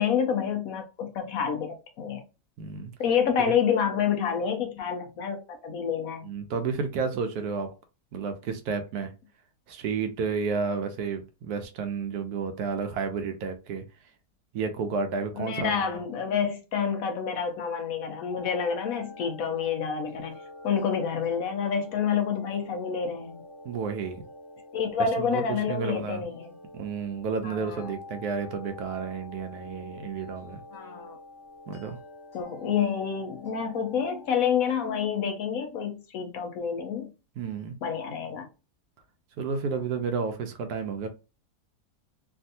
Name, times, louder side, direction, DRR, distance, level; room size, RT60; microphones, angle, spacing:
voice 1, 0.0-2.2 3.0-6.3 15.4-20.4 20.6-23.4 24.7-26.5 27.4-27.9 30.7-31.2 32.3-37.1 37.8-38.5, left 7 dB, 70° left, 1.0 m, -28 dB
voice 2, 2.6-2.9 6.2-7.7 8.1-9.1 9.7-13.8 14.5-15.9 23.6-24.2 25.2-26.2 26.7-30.6 31.7-32.0 37.4-37.7 39.4-41.1, right 5 dB, 75° right, 1.0 m, -31 dB
sound 1, 18.3-35.1, left 2 dB, 15° left, 1.4 m, -46 dB
3.4 x 2.4 x 2.7 m
omnidirectional pair, 1.7 m